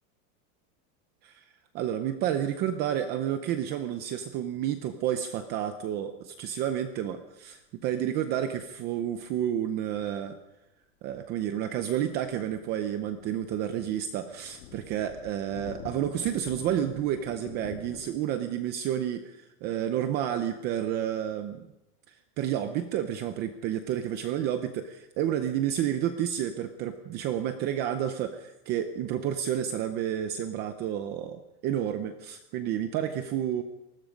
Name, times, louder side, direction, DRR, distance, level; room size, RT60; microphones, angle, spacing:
voice 1, 1.7-10.4 11.0-21.7 22.1-33.6, right 10 dB, 20° right, 9 dB, 0.6 m, -30 dB
sound 1, 9.3-9.4 11.3-18.1, left 9 dB, 55° left, 2.7 m, -47 dB
25.5 x 20.0 x 5.2 m, 0.96 s
supercardioid pair, 170°, 46 cm